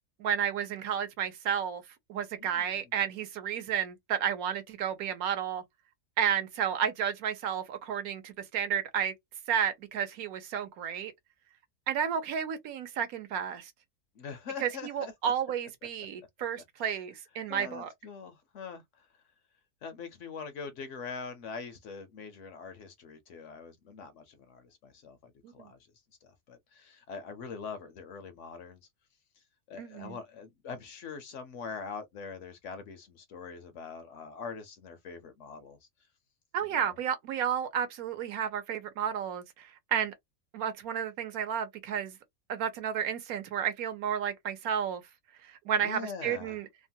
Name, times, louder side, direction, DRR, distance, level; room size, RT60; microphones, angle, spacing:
voice 1, 0.2-1.8 2.1-5.6 6.2-9.1 9.5-11.1 11.9-13.7 14.6-17.9 25.4-25.7 29.8-30.2 36.5-40.1 40.5-42.2 42.5-45.0 45.4-46.7, right 8 dB, 75° right, 1.1 m, -32 dB
voice 2, 14.2-15.1 17.5-18.8 19.8-25.8 26.2-28.8 29.7-35.8 36.7-36.9 45.8-46.6, left 5 dB, 65° left, 0.8 m, -43 dB
2.9 x 2.1 x 2.6 m
omnidirectional pair, 1.6 m